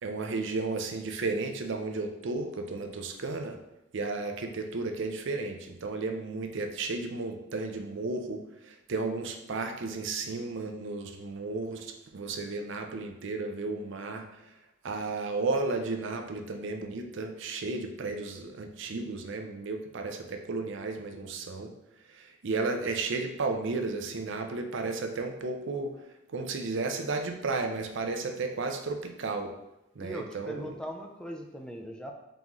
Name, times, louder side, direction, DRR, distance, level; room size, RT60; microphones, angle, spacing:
voice 1, 0.0-3.6 3.9-14.3 14.8-21.7 22.1-25.9 26.3-29.5 30.0-30.7, right 3 dB, 60° right, 5 dB, 0.5 m, -33 dB
voice 2, 30.0-32.1, equal, 5° left, 2 dB, 0.3 m, -40 dB
4.0 x 3.0 x 3.6 m, 0.89 s
head